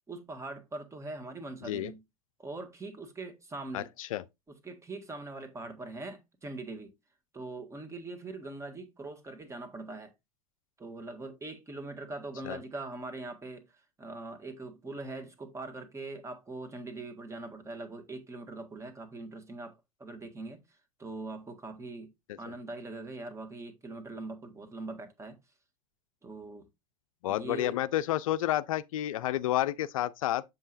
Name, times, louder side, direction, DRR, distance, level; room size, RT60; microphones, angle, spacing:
voice 1, 0.1-2.0 2.4-3.9 4.5-6.9 7.3-10.1 10.8-22.1 22.4-25.4 26.2-26.7 27.3-27.8, right 2 dB, 15° right, 1.6 m, -42 dB
voice 2, 3.7-4.2 12.4-12.6 27.2-30.4, left 13 dB, 70° left, 0.4 m, -30 dB
7.5 x 5.4 x 2.6 m
hypercardioid pair, 90°, 18 cm